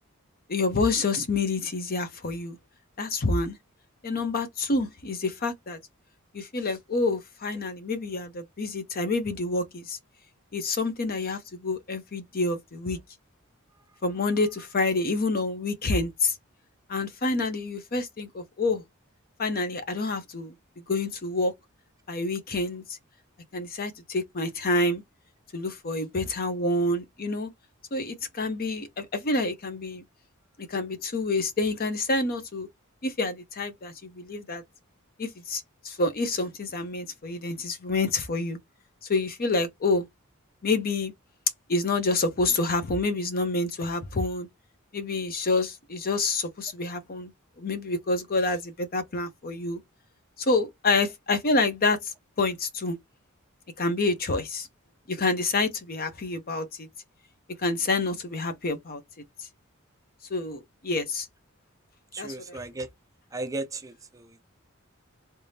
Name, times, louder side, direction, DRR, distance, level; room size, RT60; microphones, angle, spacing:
voice 1, 0.5-2.6 3.0-3.6 4.0-5.8 6.3-10.0 10.5-13.0 14.0-16.3 16.9-18.8 19.4-21.5 22.1-23.0 23.5-25.0 25.5-27.5 27.9-30.0 30.7-32.7 33.0-34.6 35.2-38.6 39.1-40.1 40.6-41.1 41.7-44.5 44.9-47.3 47.6-49.8 50.4-53.0 53.8-54.7 55.1-56.9 57.6-59.0 60.3-61.3 62.2-62.6, left 3 dB, 45° left, 0.7 m, -28 dB
voice 2, 62.1-62.9 63.3-64.2, right 2 dB, 15° right, 0.4 m, -35 dB
3.4 x 3.3 x 2.7 m
head